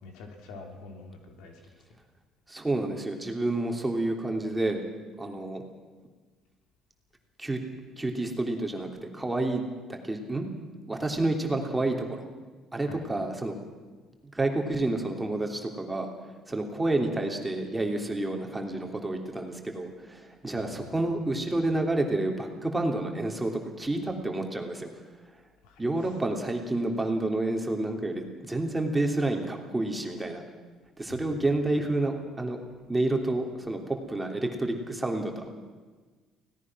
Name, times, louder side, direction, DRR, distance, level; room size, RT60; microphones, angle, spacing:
voice 1, 0.0-1.7 12.8-13.1 20.5-21.1 25.6-25.9 31.1-31.5, left 3 dB, 90° left, 3 dB, 3.5 m, -46 dB
voice 2, 2.5-4.8 5.2-5.6 7.4-7.6 8.0-9.6 9.9-10.4 10.9-12.3 12.7-13.5 14.3-16.1 16.5-23.5 23.8-24.9 25.8-30.4 31.0-32.6 32.9-35.5, right 2 dB, 10° right, 2 dB, 3.2 m, -29 dB
24.5 x 18.0 x 6.3 m, 1.4 s
cardioid pair, 105°, 0 cm